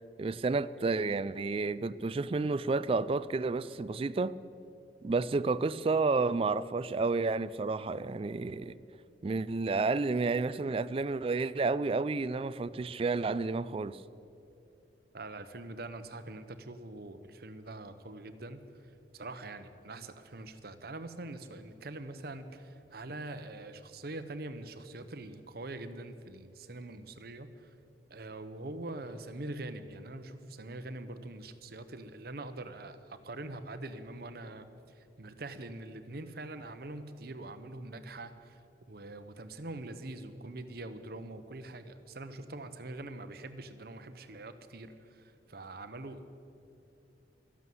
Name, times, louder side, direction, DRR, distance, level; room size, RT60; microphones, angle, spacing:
voice 1, 0.2-4.4 5.0-8.8 9.2-14.0, right 3 dB, 30° right, 0.3 m, -30 dB
voice 2, 15.1-18.6 19.1-27.7 28.1-34.7 34.9-38.6 38.9-46.3, right 2 dB, 55° right, 0.9 m, -44 dB
13.0 x 11.0 x 7.8 m
head